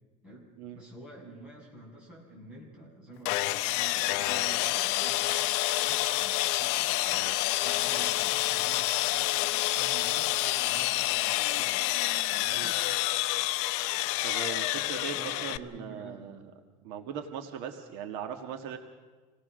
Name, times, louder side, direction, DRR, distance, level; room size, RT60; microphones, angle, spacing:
voice 1, 0.2-5.5 5.9-7.2 7.6-11.9 12.3-12.8 15.1-16.6 17.0-17.2, right 1 dB, 5° right, -5 dB, 6.8 m, -49 dB
Sawing, 3.3-15.6, left 17 dB, 90° left, 0.6 m, -28 dB
voice 2, 14.2-16.5 16.8-18.8, right 7 dB, 70° right, 5 dB, 1.7 m, -39 dB
27.0 x 18.5 x 6.4 m, 1.4 s
cardioid pair, 180°, 14 cm